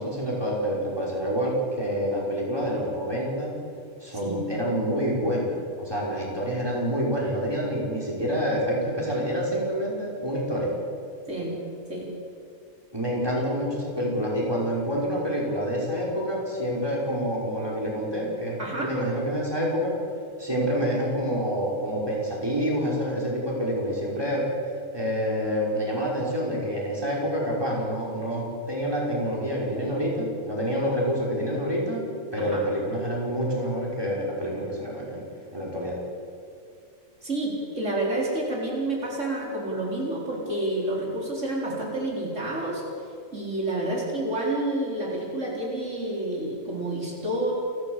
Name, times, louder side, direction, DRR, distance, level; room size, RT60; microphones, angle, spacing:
voice 1, 0.0-3.5 4.0-10.7 12.9-20.0 20.4-24.5 24.9-32.0 32.3-35.2 35.5-36.0, equal, 20° right, -3 dB, 5.5 m, -27 dB
voice 2, 18.6-18.9 32.4-32.6 37.2-42.8 43.3-47.5, right 1 dB, 65° right, -2 dB, 4.5 m, -29 dB
28.5 x 13.0 x 8.2 m, 2.4 s
omnidirectional pair, 1.4 m